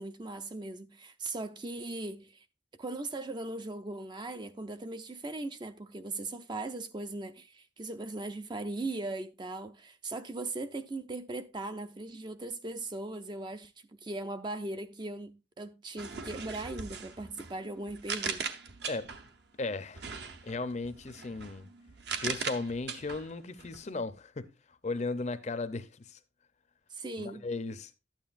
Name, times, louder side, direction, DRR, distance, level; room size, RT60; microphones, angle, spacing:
voice 1, 0.0-2.4 2.8-13.7 14.0-18.4 26.9-27.4, right 2 dB, 20° right, 0.4 m, -39 dB
sound 1, 16.0-19.4 19.9-23.8, right 6 dB, 55° right, 0.8 m, -40 dB
voice 2, 19.6-20.1 20.4-21.7 22.2-26.2 27.2-27.9, left 3 dB, 35° left, 0.5 m, -36 dB
12.0 x 8.9 x 2.5 m
head